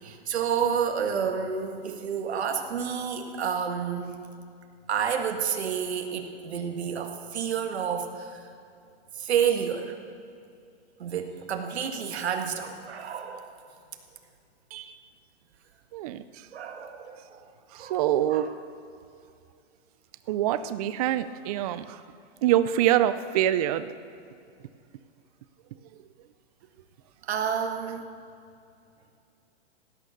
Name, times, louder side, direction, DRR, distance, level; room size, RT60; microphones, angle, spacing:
voice 1, 0.0-4.2 4.9-8.4 9.1-10.0 11.0-13.5 16.5-17.4 17.8-18.0 18.3-18.5 27.3-28.0, right 7 dB, 75° right, 5 dB, 1.9 m, -29 dB
voice 2, 15.9-16.2 17.7-18.5 20.3-22.0 22.4-23.9, right 12 dB, 35° right, 13 dB, 0.5 m, -25 dB
16.5 x 9.5 x 6.5 m, 2.5 s
hypercardioid pair, 150°, 32 cm